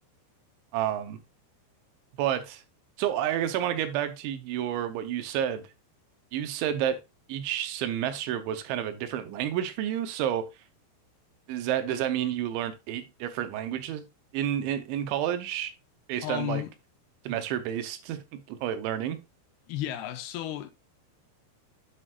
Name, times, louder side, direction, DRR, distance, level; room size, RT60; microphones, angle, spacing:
voice 1, 0.7-1.2 2.2-2.6 3.0-5.6 6.3-7.0 7.3-10.5 11.5-14.0 14.3-15.7 16.1-16.6 17.2-19.2, right 10 dB, 90° right, 3.1 m, -30 dB
voice 2, 16.2-16.7 19.7-20.7, left 13 dB, 80° left, 2.3 m, -33 dB
8.2 x 7.5 x 2.4 m
omnidirectional pair, 5.2 m